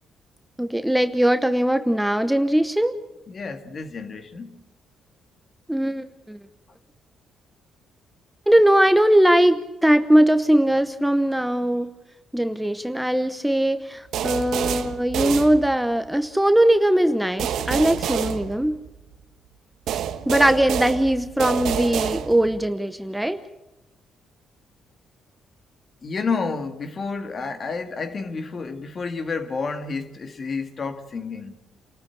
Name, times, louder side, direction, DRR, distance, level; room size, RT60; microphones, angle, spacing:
voice 1, 0.6-3.0 5.7-6.4 8.5-11.9 12.3-18.8 20.3-23.4, right 1 dB, 5° right, 0.9 m, -20 dB
voice 2, 3.3-4.6 26.0-31.5, left 4 dB, 45° left, 2.2 m, -30 dB
sound 1, 14.1-16.1 17.4-19.1 19.9-22.6, right 9 dB, 80° right, 1.2 m, -28 dB
28.0 x 14.0 x 8.6 m
cardioid pair, 90°, 0 cm